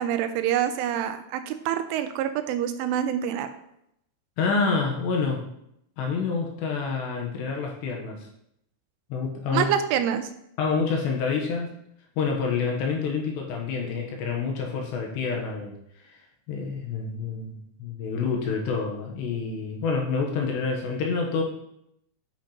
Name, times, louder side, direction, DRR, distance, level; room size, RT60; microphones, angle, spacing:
voice 1, 0.0-3.5 9.5-10.3, right 10 dB, 85° right, 9 dB, 3.0 m, -26 dB
voice 2, 4.4-5.4 6.0-8.3 9.1-9.7 10.6-11.7 12.2-15.7 16.5-21.4, left 5 dB, 75° left, 0 dB, 2.9 m, -27 dB
10.5 x 5.8 x 2.9 m, 0.77 s
omnidirectional pair, 5.6 m